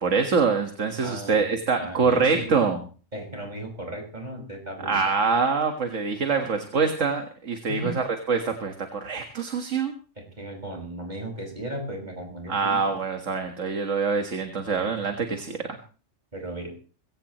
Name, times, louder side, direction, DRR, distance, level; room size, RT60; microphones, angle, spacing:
voice 1, 0.0-2.8 4.8-9.9 12.5-15.8, right 5 dB, 70° right, 5 dB, 2.0 m, -25 dB
voice 2, 1.0-1.4 1.8-2.6 3.1-5.2 7.7-8.0 10.2-12.9 16.3-16.7, right 1 dB, 35° right, 2 dB, 5.8 m, -36 dB
22.5 x 16.5 x 3.1 m, 0.39 s
omnidirectional pair, 1.3 m